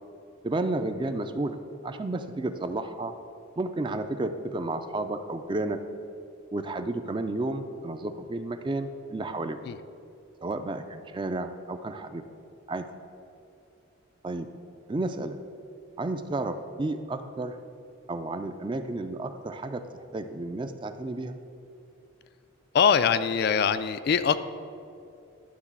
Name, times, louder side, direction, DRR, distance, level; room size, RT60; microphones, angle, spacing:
voice 1, 0.4-1.6 1.8-3.1 3.6-5.8 6.5-9.6 10.4-12.2 12.7-12.9 14.2-14.5 14.9-15.4 16.0-17.6 18.1-21.4, right 2 dB, 25° right, 9 dB, 0.4 m, -32 dB
voice 2, 22.7-24.4, left 7 dB, 50° left, 12 dB, 0.3 m, -23 dB
11.5 x 3.9 x 7.3 m, 2.6 s
head